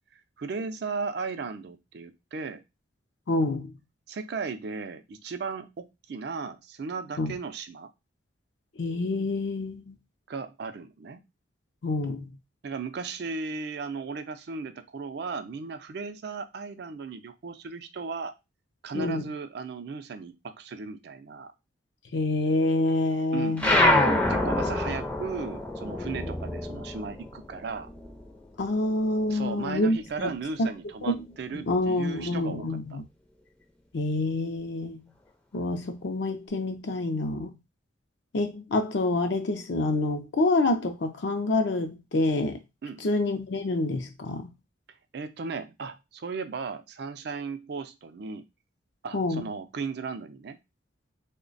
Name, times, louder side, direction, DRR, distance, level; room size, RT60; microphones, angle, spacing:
voice 1, 0.1-2.6 4.1-7.9 10.3-11.2 12.6-18.3 18.8-21.5 23.3-27.9 29.3-32.7 32.9-33.0 42.8-43.1 45.1-48.4 49.0-50.6, right 4 dB, 55° right, 0.4 m, -36 dB
voice 2, 3.3-3.7 7.2-7.3 8.8-10.0 11.8-12.3 18.9-19.3 22.1-23.7 28.6-30.3 30.6-30.7 31.0-31.2 31.5-33.0 33.9-35.0 35.5-37.5 38.3-42.6 43.0-44.5 49.1-49.4, left 2 dB, 60° left, 0.5 m, -27 dB
sound 1, 23.6-28.5 28.8-30.2, left 1 dB, 5° left, 0.4 m, -26 dB
3.1 x 2.1 x 3.8 m
head